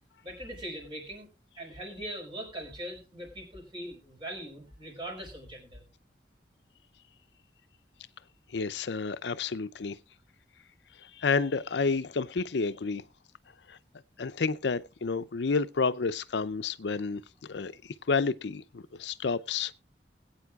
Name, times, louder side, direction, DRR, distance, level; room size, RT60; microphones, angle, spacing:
voice 1, 0.2-1.3 1.6-5.8, right 1 dB, 30° right, 5.0 m, -41 dB
voice 2, 8.5-10.0 11.2-13.0 13.7-13.8 14.2-17.2 17.5-17.7 18.1-19.7, left 4 dB, 80° left, 0.6 m, -30 dB
20.5 x 8.9 x 2.4 m
head